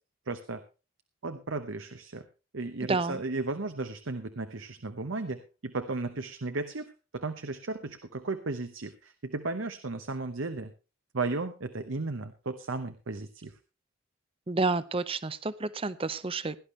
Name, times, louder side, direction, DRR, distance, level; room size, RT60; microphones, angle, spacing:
voice 1, 0.3-0.6 1.2-2.3 2.5-10.7 11.1-13.6, right 3 dB, 65° right, 9 dB, 0.9 m, -35 dB
voice 2, 2.9-3.2 14.5-16.6, right 3 dB, 25° right, 16 dB, 0.6 m, -30 dB
17.0 x 11.5 x 3.2 m, 0.31 s
head